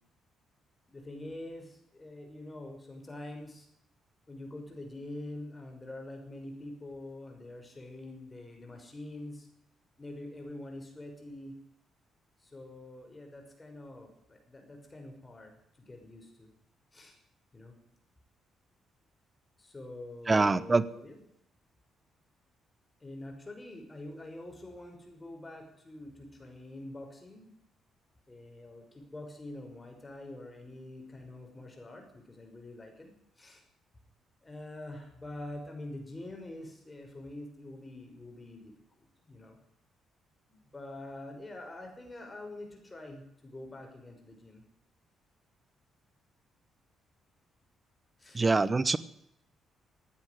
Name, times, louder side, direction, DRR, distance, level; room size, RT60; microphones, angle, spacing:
voice 1, 0.9-3.7 4.3-9.5 10.0-11.6 12.4-15.5 15.8-16.5 16.9-17.2 17.5-17.7 19.6-21.2 23.0-27.5 28.3-33.6 34.4-38.7 39.0-39.6 40.5-44.6 48.2-48.4, left 1 dB, 20° left, 3 dB, 6.0 m, -45 dB
voice 2, 20.3-20.8 48.3-49.0, right 3 dB, 25° right, 17 dB, 1.0 m, -24 dB
15.5 x 9.5 x 9.6 m, 0.74 s
cardioid pair, 90°, 0 cm